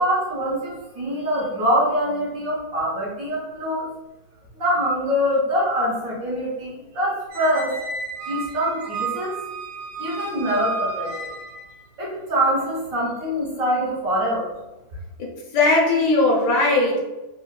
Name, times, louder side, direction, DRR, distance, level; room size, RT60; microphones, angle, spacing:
voice 1, 0.0-3.9 4.6-7.7 8.3-9.4 10.0-11.3 12.0-14.5, equal, 60° right, -6 dB, 1.1 m, -24 dB
Squeak, 7.3-11.8, right 4 dB, 80° right, 1.3 m, -32 dB
voice 2, 15.2-17.0, left 2 dB, 70° left, -2 dB, 1.2 m, -19 dB
3.6 x 2.3 x 2.2 m, 1.0 s
omnidirectional pair, 2.0 m